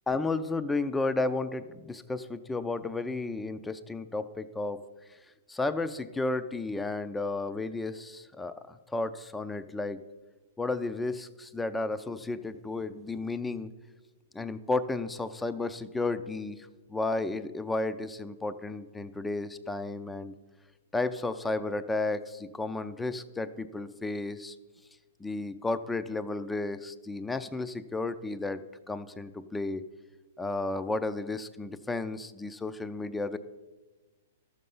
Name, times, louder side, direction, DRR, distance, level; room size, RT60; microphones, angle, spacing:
voice 1, 0.1-4.8 5.5-10.0 10.6-13.7 14.3-20.3 20.9-24.6 25.2-28.6 28.9-29.8 30.4-33.4, left 2 dB, 10° left, 12 dB, 0.5 m, -33 dB
13.0 x 6.6 x 5.5 m, 1.2 s
hypercardioid pair, 120°, 0 cm